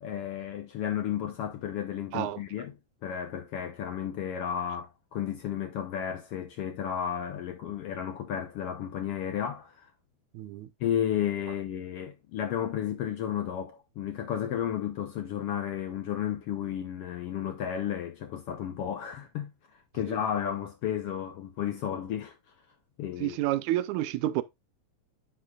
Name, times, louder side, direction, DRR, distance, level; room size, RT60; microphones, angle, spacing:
voice 1, 0.0-2.7 3.0-9.9 10.8-19.5 19.9-22.4 23.0-23.4, left 9 dB, 70° left, 1.5 m, -33 dB
voice 2, 10.3-10.7 20.1-20.2 23.2-24.4, right 15 dB, 80° right, 1.9 m, -29 dB
10.0 x 6.2 x 2.4 m
omnidirectional pair, 3.4 m